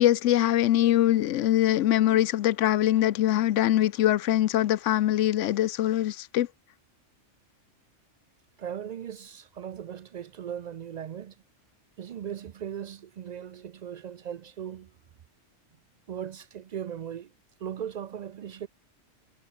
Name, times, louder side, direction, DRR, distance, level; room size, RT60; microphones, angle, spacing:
voice 1, 0.0-6.5, left 13 dB, 80° left, 0.9 m, -23 dB
voice 2, 8.6-11.4 12.0-14.9 16.1-17.3 17.6-18.7, right 9 dB, 70° right, 0.4 m, -38 dB
omnidirectional pair, 1.3 m